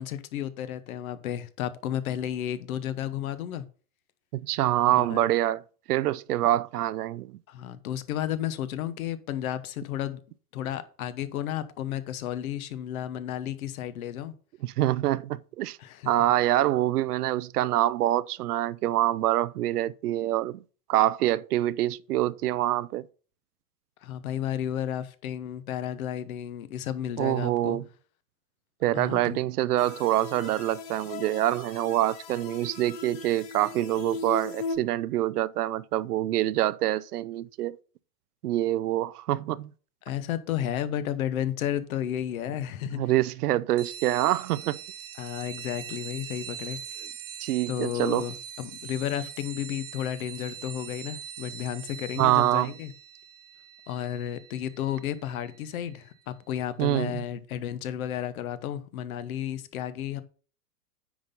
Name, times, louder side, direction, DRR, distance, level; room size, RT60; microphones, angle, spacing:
voice 1, 0.0-3.6 4.8-5.2 7.5-10.2 10.5-14.3 15.8-16.1 24.0-27.8 28.9-29.4 40.0-43.0 45.2-46.8 47.7-52.9 53.9-60.2, left 10 dB, 60° left, 1.1 m, -32 dB
voice 2, 4.3-5.6 5.9-7.4 14.6-15.8 16.1-20.6 20.9-23.0 27.2-27.8 28.8-37.8 38.4-39.7 42.9-44.8 47.4-48.3 52.2-52.7 56.8-57.2, right 14 dB, 75° right, 0.6 m, -25 dB
sound 1, 29.8-34.8, left 4 dB, 15° left, 0.3 m, -38 dB
sound 2, 43.8-55.9, right 9 dB, 55° right, 1.2 m, -43 dB
9.5 x 4.2 x 5.4 m
hypercardioid pair, 125°, 47 cm